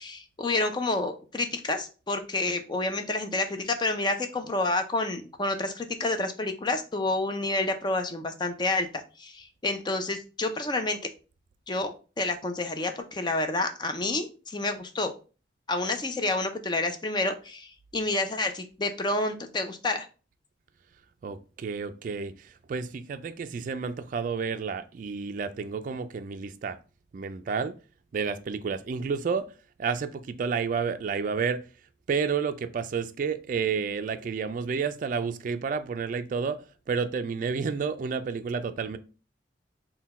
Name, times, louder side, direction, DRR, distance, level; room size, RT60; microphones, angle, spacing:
voice 1, 0.0-11.1 11.7-15.1 15.7-20.1, left 2 dB, 25° left, 0.5 m, -29 dB
voice 2, 21.2-26.8 27.1-27.7 28.1-29.5 29.8-31.6 32.1-36.6 36.9-39.0, right 5 dB, 50° right, 0.3 m, -30 dB
3.9 x 2.2 x 4.1 m
head